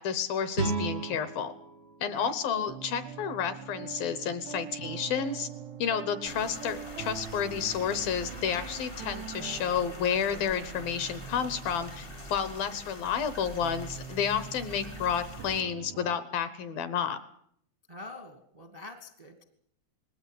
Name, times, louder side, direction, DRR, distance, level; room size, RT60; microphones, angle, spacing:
voice 1, 0.0-1.5 2.0-5.5 5.8-17.2, left 7 dB, 70° left, 13 dB, 2.4 m, -31 dB
sound 1, 0.5-3.6, right 3 dB, 60° right, 0.8 m, -36 dB
sound 2, 2.5-16.2, right 8 dB, 85° right, 3.6 m, -44 dB
sound 3, 6.2-15.6, left 1 dB, 40° left, 0.7 m, -45 dB
voice 2, 17.9-19.4, left 2 dB, 30° right, 8 dB, 0.7 m, -45 dB
21.0 x 17.0 x 9.3 m, 0.68 s
omnidirectional pair, 5.2 m